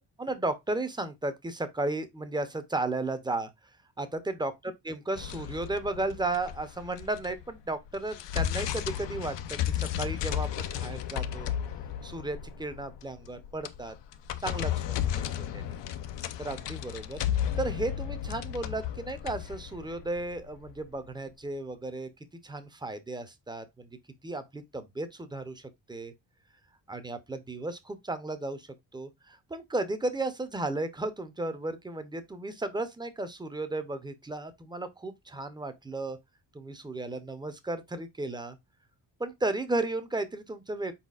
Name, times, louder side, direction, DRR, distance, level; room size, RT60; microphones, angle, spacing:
voice 1, 0.2-3.5 4.0-4.5 4.8-11.5 12.0-13.9 14.4-14.7 15.5-15.8 16.4-17.2 17.6-22.1 22.4-23.9 24.2-26.1 26.9-36.2 36.5-38.6 39.2-40.9, right 2 dB, 10° right, 0.6 m, -34 dB
sound 1, 5.2-7.5 7.9-20.9, left 10 dB, 70° left, 0.6 m, -34 dB
4.4 x 4.2 x 2.4 m
cardioid pair, 110°, 44 cm